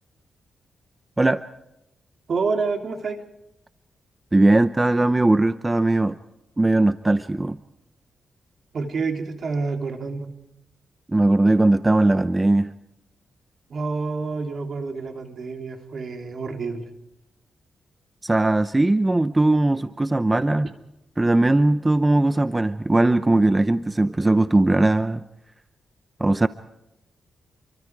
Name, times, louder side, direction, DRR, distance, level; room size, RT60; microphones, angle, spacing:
voice 1, 2.3-3.2 8.7-10.3 13.7-16.9, right 4 dB, 55° right, 5 dB, 3.3 m, -28 dB
voice 2, 4.3-6.2 6.6-7.6 11.1-12.7 18.2-20.7 21.2-25.2 26.2-26.5, right 2 dB, 20° right, 12 dB, 0.7 m, -19 dB
30.0 x 24.0 x 4.8 m, 0.89 s
cardioid pair, 85°, 0 cm